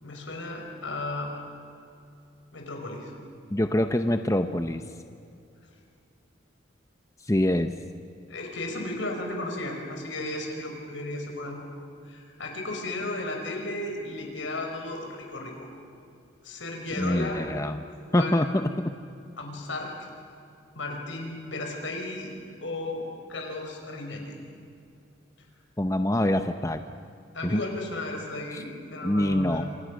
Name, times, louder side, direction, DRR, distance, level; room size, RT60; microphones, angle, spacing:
voice 1, 0.0-1.3 2.5-3.1 8.3-11.7 12.0-15.7 16.4-17.4 18.1-18.4 19.4-20.1 20.8-22.3 22.6-24.3 27.3-29.7, left 2 dB, 75° left, 2 dB, 5.5 m, -34 dB
voice 2, 3.5-4.8 7.3-7.7 17.0-17.9 18.1-18.7 25.8-26.8 27.4-27.6 28.5-28.6 29.0-29.6, left 1 dB, 15° left, 8 dB, 0.7 m, -25 dB
27.5 x 27.0 x 6.5 m, 2.6 s
head